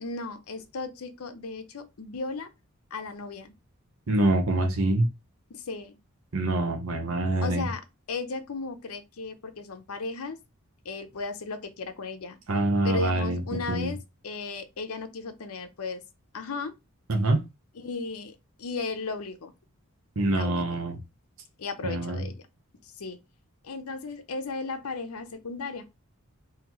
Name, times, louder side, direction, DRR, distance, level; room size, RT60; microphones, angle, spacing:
voice 1, 0.0-2.5 2.9-3.5 5.5-6.0 7.4-7.8 8.1-10.4 10.8-12.4 12.8-14.0 14.2-16.0 16.3-16.7 17.8-19.5 20.3-20.7 21.6-22.4 22.8-23.2 23.6-25.8, left 4 dB, 75° left, 0.7 m, -35 dB
voice 2, 4.1-5.1 6.3-7.7 12.5-13.9 17.1-17.4 20.2-21.0 21.8-22.2, right 2 dB, 65° right, 0.8 m, -25 dB
4.0 x 2.8 x 2.9 m
head